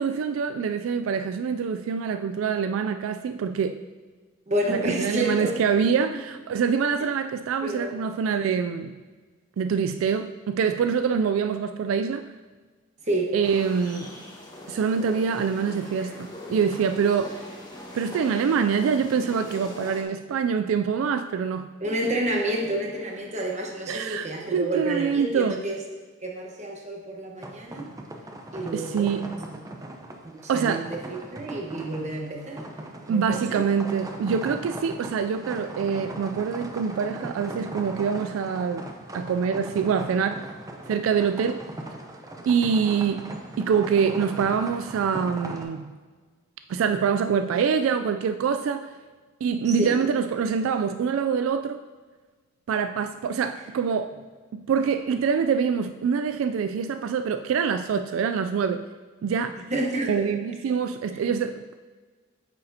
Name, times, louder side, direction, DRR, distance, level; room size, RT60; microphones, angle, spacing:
voice 1, 0.0-3.8 4.7-9.0 9.6-12.3 13.3-14.1 14.7-17.4 17.9-21.7 23.9-25.6 28.7-29.4 30.5-30.9 33.1-38.8 39.1-40.5 40.9-41.6 42.5-45.9 46.7-48.9 49.4-51.8 52.7-54.2 54.5-58.9 59.2-59.6 60.1-61.8, right 6 dB, 90° right, 9 dB, 0.3 m, -25 dB
voice 2, 4.5-5.5 5.9-6.0 7.6-7.9 13.0-13.3 21.8-25.8 26.2-27.9 28.5-29.6 30.2-32.6 33.1-33.6 49.6-49.9 59.7-60.3, right 1 dB, 35° right, 0 dB, 1.1 m, -29 dB
sound 1, 13.4-20.0, left 1 dB, 20° left, 1.1 m, -41 dB
sound 2, 27.4-45.6, right 1 dB, 20° right, 0.7 m, -39 dB
9.2 x 6.7 x 2.8 m, 1.4 s
head